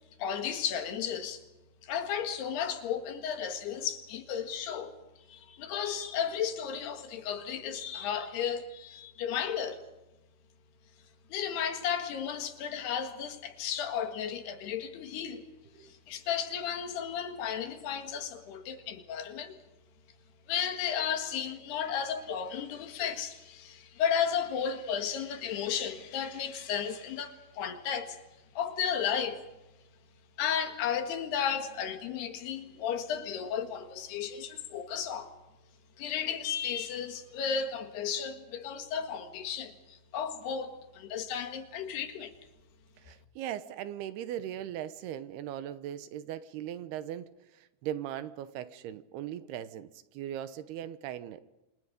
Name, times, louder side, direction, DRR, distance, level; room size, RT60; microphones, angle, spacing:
voice 1, 0.2-1.4 1.8-4.9 5.3-9.8 11.3-15.4 15.8-19.6 20.5-28.2 28.6-29.4 30.4-35.3 36.0-42.3, left 8 dB, 75° left, 3.8 m, -34 dB
voice 2, 43.0-51.4, right 11 dB, 80° right, 2.9 m, -39 dB
28.0 x 26.5 x 5.2 m
omnidirectional pair, 4.8 m